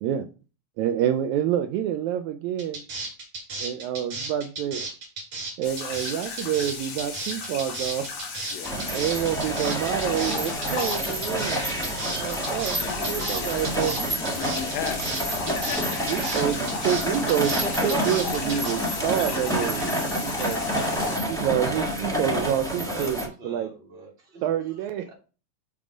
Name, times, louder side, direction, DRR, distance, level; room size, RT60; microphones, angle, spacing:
voice 1, 0.8-2.8 3.6-4.9 5.6-8.1 8.7-14.1 16.1-20.6 21.2-23.2 23.4-23.7 24.4-25.1, right 10 dB, 80° right, 1.9 m, -28 dB
sound 1, 2.6-18.7, right 3 dB, 50° right, 2.9 m, -34 dB
sound 2, 5.6-21.2, left 4 dB, 60° left, 2.1 m, -35 dB
sound 3, 8.6-23.3, right 1 dB, 5° left, 0.4 m, -29 dB
voice 2, 10.4-11.0 12.8-13.6 14.1-16.1, left 11 dB, 80° left, 1.8 m, -37 dB
voice 3, 21.4-25.1, right 2 dB, 25° right, 1.4 m, -43 dB
6.2 x 3.8 x 5.0 m
omnidirectional pair, 3.4 m